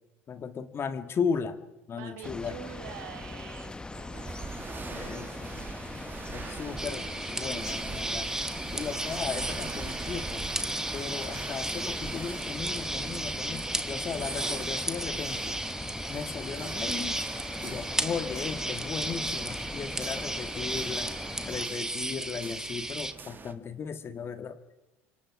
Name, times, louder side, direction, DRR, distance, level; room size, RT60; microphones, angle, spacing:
voice 1, 0.3-1.6 1.9-2.6 4.9-5.6 6.3-8.3 8.7-10.4 10.9-15.5 16.1-17.2 17.6-21.1 21.5-24.6, left 6 dB, 35° left, 9 dB, 1.7 m, -36 dB
voice 2, 1.9-4.4 6.4-7.3, right 9 dB, 70° right, 4 dB, 3.5 m, -46 dB
sound 1, 2.2-21.7, left 2 dB, 10° left, 1.1 m, -41 dB
sound 2, 4.1-23.5, right 5 dB, 30° right, 1.5 m, -43 dB
sound 3, 6.8-23.1, right 1 dB, 10° right, 1.7 m, -34 dB
29.5 x 25.0 x 4.8 m, 1.0 s
hypercardioid pair, 75°, 7 cm